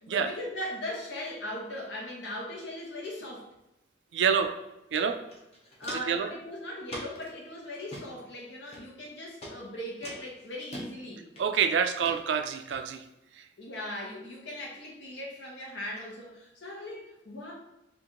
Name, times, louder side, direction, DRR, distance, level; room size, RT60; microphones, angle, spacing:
voice 1, 0.0-3.5 5.8-11.2 13.6-17.5, left 1 dB, 75° left, -3 dB, 1.0 m, -39 dB
voice 2, 4.1-4.5 4.9-5.2 5.9-6.3 11.4-13.0 13.4-13.5, right 7 dB, 70° right, 7 dB, 0.3 m, -27 dB
Walk footsteps, 4.9-5.0 5.3-6.2 6.9-7.3 7.7-8.0 8.7-9.1 9.4-9.5 10.0-10.9 11.4-11.7 12.0-12.2 12.7-12.8, equal, 35° left, 0.7 m, -42 dB
2.9 x 2.5 x 3.7 m, 0.92 s
head